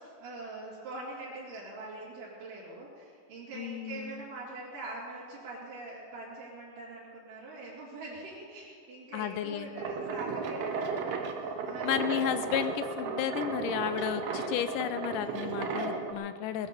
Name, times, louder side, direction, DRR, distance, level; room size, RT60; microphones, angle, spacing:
voice 1, 0.2-12.1, right 2 dB, 75° right, -7 dB, 4.4 m, -43 dB
voice 2, 3.5-4.2 9.1-9.7 11.8-16.7, left 10 dB, 90° left, 10 dB, 2.4 m, -33 dB
sound 1, 9.8-16.1, right 4 dB, 60° right, 1.8 m, -34 dB
19.0 x 10.5 x 6.9 m, 2.3 s
omnidirectional pair, 3.7 m